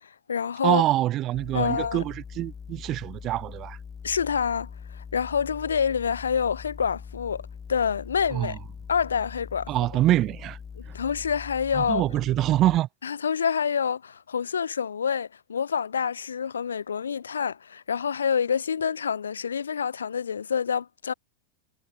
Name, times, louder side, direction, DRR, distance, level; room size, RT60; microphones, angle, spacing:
voice 1, 0.0-0.8 1.5-2.0 4.0-8.6 8.9-9.7 10.8-12.0 13.0-21.1, left 7 dB, 70° left, 0.6 m, -27 dB
voice 2, 0.6-3.8 8.3-8.5 9.7-10.6 11.8-12.9, right 14 dB, 35° right, 0.4 m, -25 dB
sound 1, 1.3-12.8, left 6 dB, 20° left, 1.0 m, -42 dB
figure-of-eight pair, 90°, 0 cm